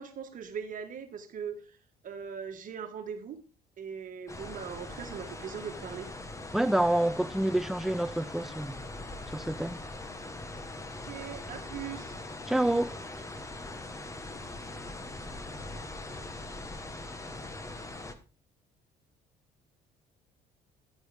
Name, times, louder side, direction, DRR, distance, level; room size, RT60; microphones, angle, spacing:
voice 1, 0.0-1.8 2.0-3.4 3.8-6.1 11.1-12.1, right 7 dB, 50° right, 1.5 m, -40 dB
sound 1, 4.3-18.1, left 2 dB, 20° left, 1.2 m, -41 dB
voice 2, 6.5-8.8 9.3-9.8 12.5-13.0, right 1 dB, ahead, 0.4 m, -28 dB
10.0 x 9.3 x 3.5 m
cardioid pair, 110°, 17 cm